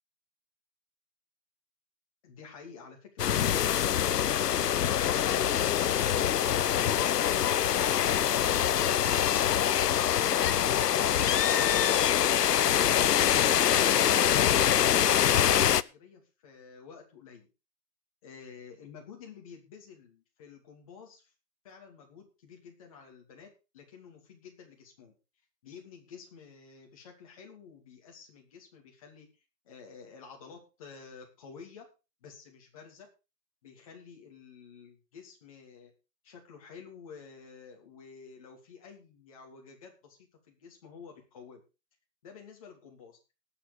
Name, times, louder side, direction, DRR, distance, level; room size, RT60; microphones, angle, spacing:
voice 1, 2.2-4.5 13.7-17.5 18.2-21.3 21.6-23.5 23.7-25.1 25.6-29.3 29.6-31.8 32.2-33.1 33.6-35.9 36.2-41.6 42.2-43.2, left 6 dB, 20° left, 0 dB, 2.6 m, -51 dB
sound 1, 3.2-15.8, left 10 dB, 70° left, 0.7 m, -24 dB
18.5 x 7.1 x 5.1 m, 0.31 s
hypercardioid pair, 180°, 50 cm